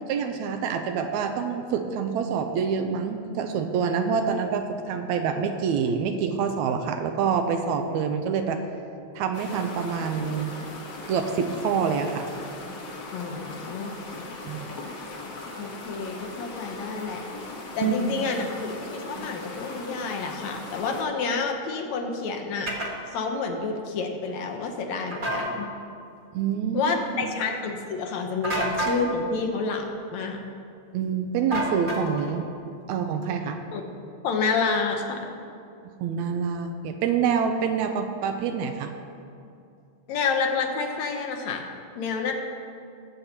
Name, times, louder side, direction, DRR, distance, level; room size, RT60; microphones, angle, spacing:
voice 1, 0.1-8.6 9.1-10.6 11.1-12.3 14.5-14.7 17.8-18.3 26.3-26.8 27.2-27.3 30.9-32.5 32.9-33.6 36.0-38.9, right 6 dB, 85° right, 6 dB, 1.9 m, -26 dB
sound 1, 9.3-21.0, left 2 dB, 50° left, 1.4 m, -39 dB
voice 2, 13.1-14.3 15.6-17.2 17.8-22.8 23.1-25.7 26.7-30.4 33.7-33.8 34.2-35.2 40.1-41.7 42.0-42.3, left 4 dB, 75° left, 3 dB, 2.2 m, -29 dB
sound 2, 22.7-22.9 25.1-25.5 28.4-29.0 31.5-32.3, right 1 dB, 35° right, 0.8 m, -28 dB
19.0 x 7.9 x 2.9 m, 2.5 s
omnidirectional pair, 3.3 m